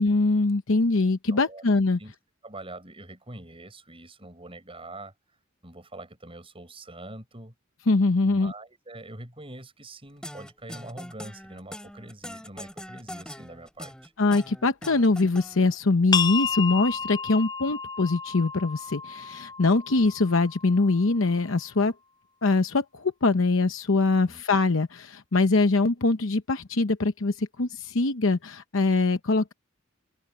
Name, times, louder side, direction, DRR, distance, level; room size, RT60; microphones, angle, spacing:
voice 1, 0.0-2.0 7.9-8.5 14.2-21.9 22.4-29.5, left 3 dB, 65° left, 0.9 m, -23 dB
voice 2, 1.3-1.6 2.0-2.1 2.4-5.1 5.6-7.5 8.3-14.1 24.2-24.4, right 2 dB, 25° right, 7.5 m, -44 dB
sound 1, 10.2-15.8, left 1 dB, 5° left, 3.0 m, -42 dB
sound 2, 16.1-21.5, left 7 dB, 20° left, 0.4 m, -32 dB
open air
head